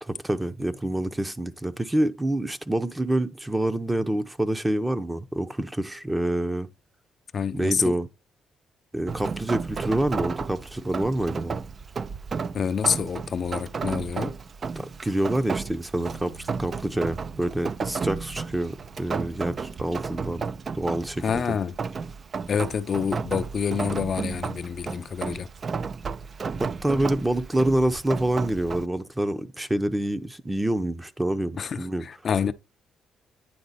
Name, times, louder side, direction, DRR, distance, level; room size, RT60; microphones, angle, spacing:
voice 1, 0.0-6.7 7.5-8.1 8.9-11.6 14.8-20.4 20.7-21.6 26.6-32.0, right 1 dB, 10° right, 0.7 m, -27 dB
voice 2, 7.3-8.0 12.5-14.4 21.2-21.8 22.5-25.5 31.6-32.5, left 6 dB, 50° left, 0.5 m, -27 dB
Rain, 9.1-28.9, right 5 dB, 40° right, 0.4 m, -33 dB
sound 1, 15.9-23.6 26.6-26.7, right 7 dB, 80° right, 4.1 m, -51 dB
9.4 x 3.9 x 4.1 m
cardioid pair, 90°, 0 cm